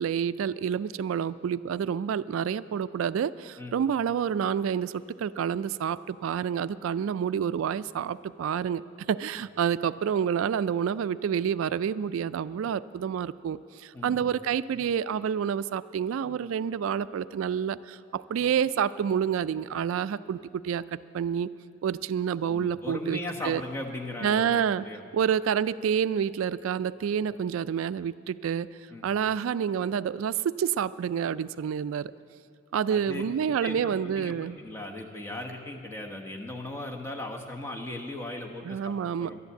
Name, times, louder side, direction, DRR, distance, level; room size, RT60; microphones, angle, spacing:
voice 1, 0.0-8.8 9.1-20.8 21.1-21.5 21.8-23.2 23.4-23.6 24.2-24.9 25.1-28.7 29.0-32.1 32.7-34.6 38.6-39.3, right 8 dB, 85° right, 16 dB, 0.3 m, -28 dB
voice 2, 13.9-14.2 22.5-25.0 28.9-29.0 32.9-33.2 33.6-39.4, left 1 dB, 15° left, 0 dB, 1.1 m, -38 dB
11.5 x 11.0 x 8.2 m, 2.4 s
head